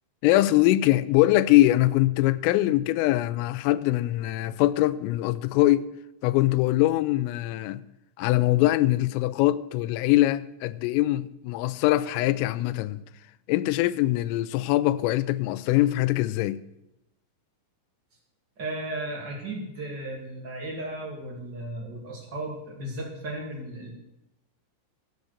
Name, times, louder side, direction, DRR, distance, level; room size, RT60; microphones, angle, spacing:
voice 1, 0.2-5.9 6.2-7.8 8.2-13.0 13.5-16.6, left 16 dB, 90° left, 3.2 m, -22 dB
voice 2, 18.6-23.9, right 1 dB, 35° right, 1.8 m, -35 dB
12.5 x 8.3 x 6.6 m
omnidirectional pair, 5.7 m